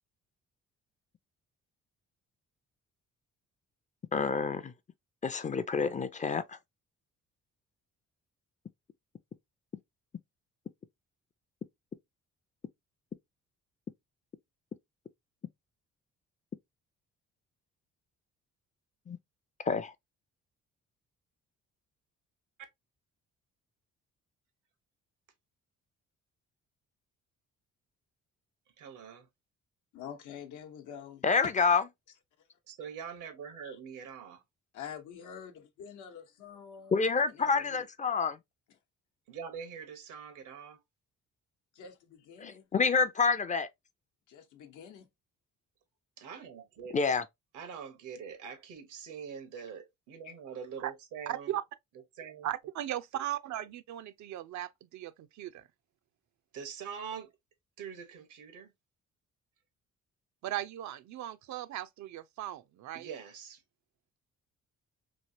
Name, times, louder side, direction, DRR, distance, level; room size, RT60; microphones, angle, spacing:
voice 1, 4.1-4.7 5.2-6.6 19.1-19.2 19.7-19.9 31.2-31.8 36.9-38.4 42.4-43.7 46.9-47.2, left 5 dB, 25° left, 0.4 m, -28 dB
voice 2, 28.8-29.3 32.7-34.4 39.3-40.8 46.2-47.1 47.5-51.5 52.2-52.5 56.5-57.3 57.8-58.7 62.9-63.6, right 7 dB, 85° right, 1.0 m, -44 dB
voice 3, 29.9-31.2 33.6-33.8 34.7-37.0 37.3-37.9 41.7-42.7 44.3-45.1 50.2-50.3, left 8 dB, 80° left, 0.8 m, -47 dB
voice 4, 51.3-51.6 52.4-55.6 60.4-63.1, right 12 dB, 70° right, 0.5 m, -37 dB
3.1 x 2.8 x 2.6 m
cardioid pair, 90°, 30 cm